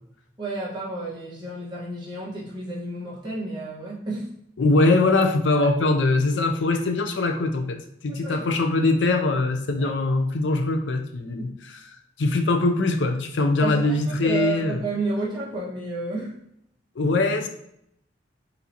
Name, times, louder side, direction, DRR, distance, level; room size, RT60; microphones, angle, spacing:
voice 1, 0.4-4.3 8.1-8.4 9.8-9.9 13.6-16.3, right 3 dB, 25° right, -7 dB, 1.4 m, -31 dB
voice 2, 4.6-11.5 12.2-14.8 17.0-17.5, left 2 dB, 80° left, 6 dB, 0.5 m, -22 dB
4.1 x 3.9 x 2.9 m, 0.75 s
head